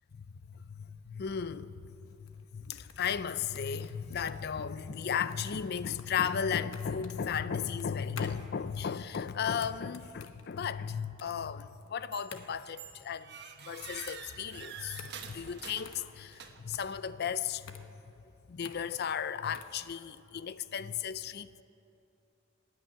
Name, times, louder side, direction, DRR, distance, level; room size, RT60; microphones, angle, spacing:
voice 1, 0.4-1.9 2.4-17.9 18.5-21.6, left 7 dB, 50° left, 0.4 m, -35 dB
sound 1, 2.0-19.8, left 6 dB, 70° left, 1.0 m, -52 dB
sound 2, 12.1-12.4 12.8-16.8, right 7 dB, 55° right, 1.2 m, -47 dB
15.5 x 9.7 x 9.3 m
head